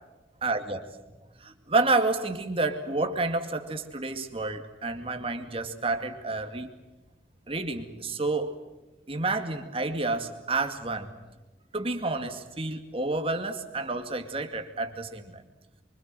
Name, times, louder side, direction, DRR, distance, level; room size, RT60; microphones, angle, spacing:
voice 1, 0.4-0.8 1.4-6.7 7.5-8.5 9.1-11.1 11.7-15.4, right 3 dB, 30° right, 6 dB, 2.3 m, -29 dB
29.5 x 24.5 x 7.8 m, 1.1 s
head